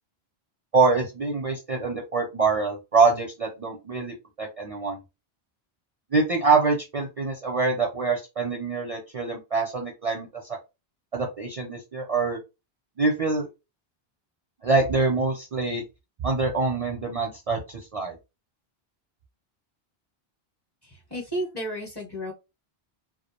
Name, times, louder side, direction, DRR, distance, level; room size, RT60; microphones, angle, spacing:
voice 1, 0.7-5.0 6.1-10.4 11.1-12.4 13.0-13.5 14.6-15.8 16.2-18.2, right 4 dB, 45° right, 0 dB, 0.5 m, -25 dB
voice 2, 20.8-22.3, equal, 25° left, -1 dB, 0.7 m, -32 dB
2.3 x 2.0 x 2.8 m, 0.26 s
omnidirectional pair, 1.1 m